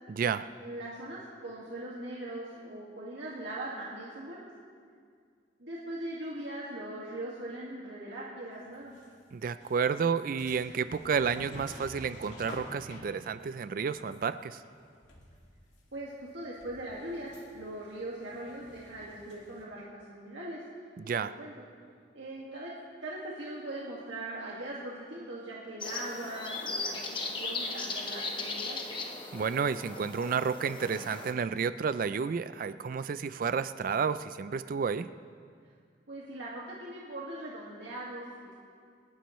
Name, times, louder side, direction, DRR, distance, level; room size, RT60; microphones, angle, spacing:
voice 1, 0.1-0.5 9.3-14.6 21.0-21.3 29.3-35.1, right 6 dB, 50° right, 13 dB, 0.3 m, -31 dB
voice 2, 0.6-4.5 5.6-8.9 15.9-20.6 21.1-21.7 22.1-22.7 23.0-28.8 36.1-38.5, right 1 dB, 80° right, -6 dB, 1.9 m, -40 dB
sound 1, 8.7-9.1 9.6-15.9 16.2-19.6, left 1 dB, 90° left, 2.4 m, -50 dB
sound 2, 25.8-31.3, left 3 dB, 25° left, 1.2 m, -37 dB
28.0 x 11.5 x 3.1 m, 2.2 s
head